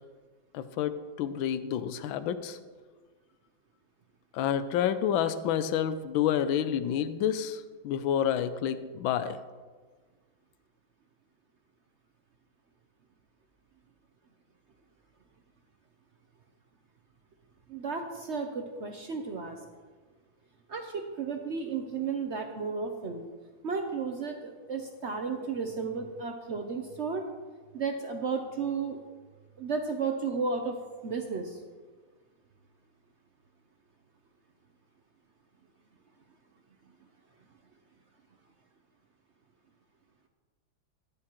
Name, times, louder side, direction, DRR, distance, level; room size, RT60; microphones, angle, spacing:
voice 1, 0.5-2.6 4.3-9.4, left 9 dB, 80° left, 12 dB, 1.4 m, -29 dB
voice 2, 17.7-19.6 20.7-23.2 23.6-27.2 27.7-29.0 29.6-30.7 31.0-31.6, right 5 dB, 70° right, 4 dB, 0.6 m, -33 dB
14.5 x 9.9 x 3.0 m, 1.4 s
omnidirectional pair, 2.1 m